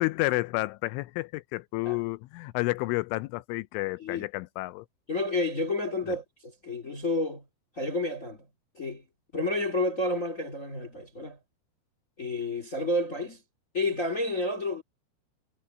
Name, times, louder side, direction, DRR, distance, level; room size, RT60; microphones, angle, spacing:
voice 1, 0.0-4.9, left 21 dB, 85° left, 2.9 m, -30 dB
voice 2, 5.1-7.4 7.7-8.5 8.7-9.0 9.3-11.4 12.2-13.4 13.7-14.8, left 2 dB, 45° left, 1.0 m, -30 dB
omnidirectional pair, 5.8 m